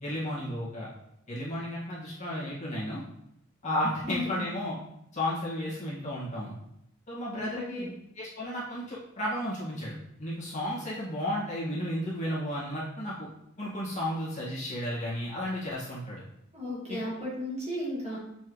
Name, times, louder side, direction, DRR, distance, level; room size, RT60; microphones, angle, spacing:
voice 1, 0.0-0.9 1.3-3.0 3.6-4.8 5.1-6.5 7.1-7.9 8.2-13.3 13.6-16.2 16.9-17.0, left 1 dB, 35° left, -7 dB, 1.9 m, -33 dB
voice 2, 4.0-4.4 7.3-7.9 16.5-18.2, left 1 dB, 30° right, -6 dB, 2.0 m, -35 dB
7.2 x 4.5 x 3.1 m, 0.78 s
head